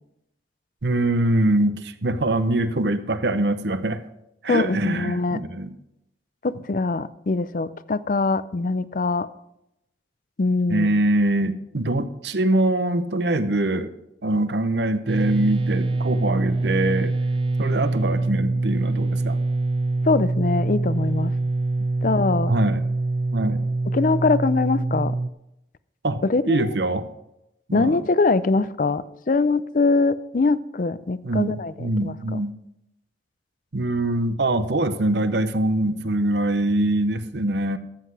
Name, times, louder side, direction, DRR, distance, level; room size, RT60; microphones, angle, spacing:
voice 1, 0.8-4.0 4.4-5.7 10.7-13.9 14.2-17.1 17.6-19.4 22.5-22.8 23.3-23.6 26.0-27.1 27.7-28.0 31.2-32.5 33.7-37.8, right 1 dB, 65° right, 11 dB, 0.8 m, -23 dB
voice 2, 4.5-5.4 6.4-9.3 10.4-10.9 20.0-21.3 22.0-22.5 23.9-25.2 26.2-26.8 27.7-31.7 32.0-32.4, left 3 dB, 45° left, 16 dB, 0.5 m, -22 dB
sound 1, 15.1-25.3, right 2 dB, 30° right, 0.3 m, -24 dB
13.5 x 8.0 x 4.7 m, 0.85 s
head